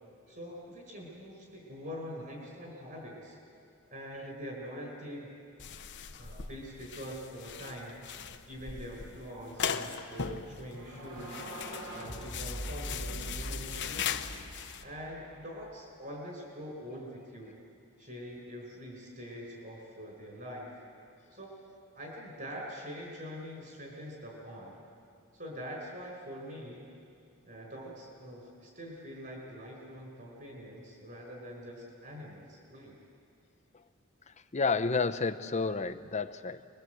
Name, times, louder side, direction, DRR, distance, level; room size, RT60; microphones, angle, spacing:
voice 1, 0.3-3.4 3.9-5.3 6.2-8.0 8.5-11.5 11.9-14.3 14.8-17.6 18.0-20.7 21.3-21.5 22.0-24.7 25.4-26.9 27.4-33.0, equal, 45° right, -1 dB, 5.0 m, -44 dB
sound 1, 5.6-14.8, left 7 dB, 55° left, 1.0 m, -39 dB
sound 2, 10.7-15.5, right 1 dB, 70° right, 5.3 m, -42 dB
voice 2, 34.3-36.7, left 4 dB, 35° left, 11 dB, 0.8 m, -31 dB
28.0 x 21.5 x 8.0 m, 2.4 s
head